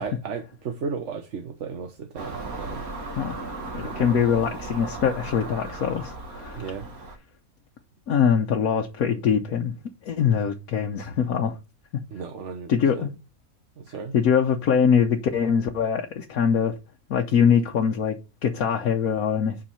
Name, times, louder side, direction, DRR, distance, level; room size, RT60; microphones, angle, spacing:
voice 1, 0.0-2.8 3.7-4.2 6.5-6.9 12.1-13.1 13.8-14.1, right 5 dB, 60° right, 1.3 m, -35 dB
Car passing by / Engine, 2.2-7.2, right 2 dB, 85° right, 2.1 m, -36 dB
voice 2, 3.7-6.7 8.1-9.7 10.0-11.6 12.7-13.1 14.1-16.8 17.1-19.6, left 7 dB, 80° left, 1.4 m, -23 dB
8.9 x 5.5 x 5.6 m
omnidirectional pair, 1.5 m